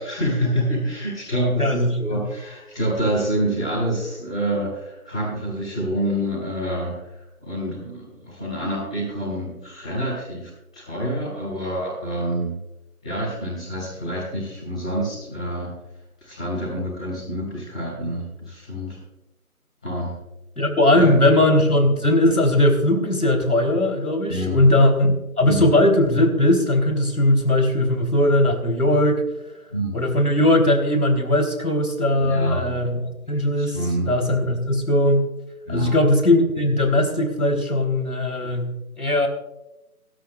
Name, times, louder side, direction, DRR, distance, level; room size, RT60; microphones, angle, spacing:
voice 1, 0.0-7.1 7.4-10.5 10.7-12.5 13.0-15.7 16.2-19.0 19.8-20.1 20.9-21.2 24.3-24.7 25.4-25.7 29.7-30.0 32.2-32.7 33.3-34.1 35.6-35.9, right 1 dB, 5° left, -15 dB, 4.2 m, -27 dB
voice 2, 1.6-2.2 20.6-29.2 29.9-33.8 34.1-35.2 35.7-39.3, left 1 dB, 80° left, 4 dB, 3.6 m, -19 dB
28.0 x 12.5 x 2.4 m, 0.92 s
figure-of-eight pair, 180°, 45 cm